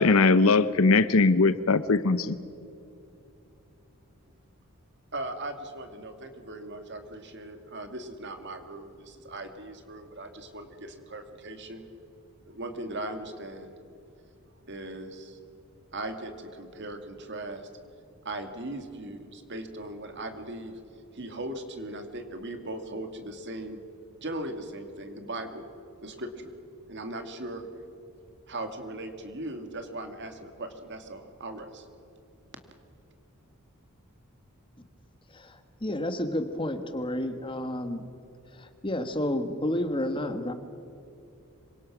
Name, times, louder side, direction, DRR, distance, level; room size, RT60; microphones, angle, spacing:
voice 1, 0.0-2.4, left 3 dB, 70° left, 15 dB, 0.8 m, -20 dB
voice 2, 5.1-11.8 12.5-13.7 14.6-15.4 15.9-17.7 18.2-20.8 21.1-23.8 24.2-25.7 26.0-26.5 26.9-27.7 28.5-31.9, right 1 dB, 50° right, 7 dB, 2.2 m, -38 dB
voice 3, 35.3-38.0 38.5-40.5, left 1 dB, 20° left, 9 dB, 1.3 m, -31 dB
26.5 x 24.0 x 6.1 m, 2.6 s
head